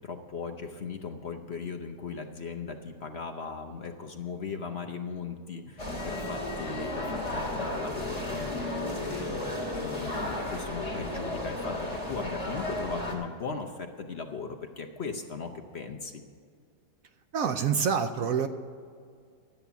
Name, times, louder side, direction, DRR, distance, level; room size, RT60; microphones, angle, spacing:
voice 1, 0.0-8.6 8.9-11.8 12.1-16.2, left 5 dB, 50° left, 5 dB, 0.8 m, -38 dB
sound 1, 5.8-13.2, left 1 dB, 20° left, 2.4 m, -34 dB
voice 2, 17.3-18.5, right 7 dB, 65° right, 8 dB, 0.9 m, -26 dB
13.0 x 8.5 x 6.9 m, 2.2 s
omnidirectional pair, 1.9 m